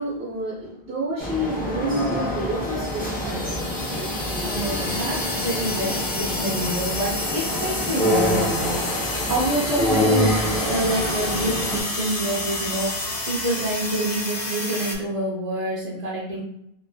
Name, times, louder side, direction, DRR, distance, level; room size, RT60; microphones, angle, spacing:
voice 1, 0.0-4.0, right 1 dB, 70° right, -7 dB, 1.2 m, -29 dB
sound 1, 1.2-11.8, left 1 dB, 10° left, 0.5 m, -26 dB
sound 2, 2.5-14.9, left 2 dB, 60° left, 0.9 m, -30 dB
voice 2, 4.4-16.4, right 1 dB, 40° right, -6 dB, 0.7 m, -27 dB
3.1 x 2.6 x 2.6 m, 0.76 s
omnidirectional pair, 1.1 m